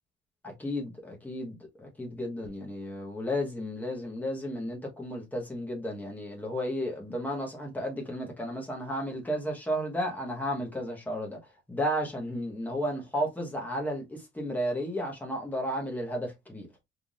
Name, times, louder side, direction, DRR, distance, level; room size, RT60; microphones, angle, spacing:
voice 1, 0.4-11.4 11.7-16.7, equal, 10° left, 1.2 m, -33 dB
4.5 x 3.7 x 2.5 m
cardioid pair, 175°, 20 cm